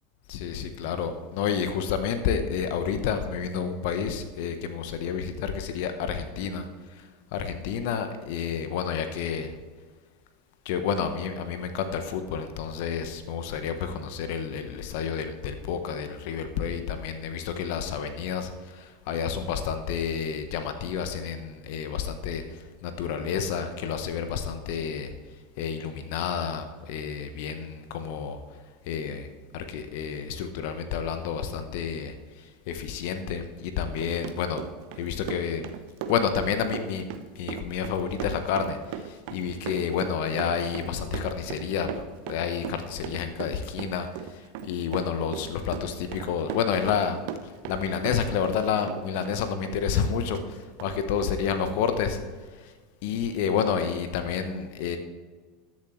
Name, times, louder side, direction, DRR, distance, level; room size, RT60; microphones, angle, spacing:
voice 1, 0.3-9.5 10.6-25.1 25.6-28.4 28.9-29.3 29.5-34.6 35.0-35.6 36.1-37.0 37.3-47.2 47.4-52.2 52.5-52.7 53.0-55.0, left 7 dB, 60° left, 8 dB, 1.0 m, -30 dB
Run, 33.8-48.6 48.9-50.5 50.8-50.9 51.2-51.4 51.7-51.8, right 9 dB, 60° right, 0.8 m, -38 dB
21.0 x 7.3 x 3.2 m, 1.4 s
hypercardioid pair, 85°, 0 cm